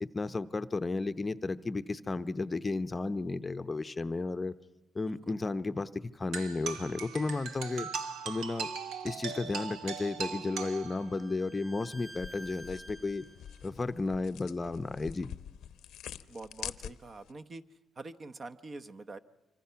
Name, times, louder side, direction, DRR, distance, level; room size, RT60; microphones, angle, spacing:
voice 1, 0.0-4.5 4.9-7.9 8.2-8.7 9.0-13.3 13.6-15.3, left 3 dB, 25° left, 11 dB, 0.7 m, -33 dB
sound 1, 6.3-11.3, right 6 dB, 90° right, 1.4 m, -39 dB
Bowed string instrument, 10.0-13.6, equal, 10° right, 1.1 m, -51 dB
sound 2, 12.1-17.3, left 10 dB, 80° left, 0.7 m, -46 dB
voice 2, 16.3-17.6 18.0-19.2, right 3 dB, 40° right, 9 dB, 1.0 m, -45 dB
26.0 x 25.0 x 5.8 m, 1.0 s
cardioid pair, 90°, 0 cm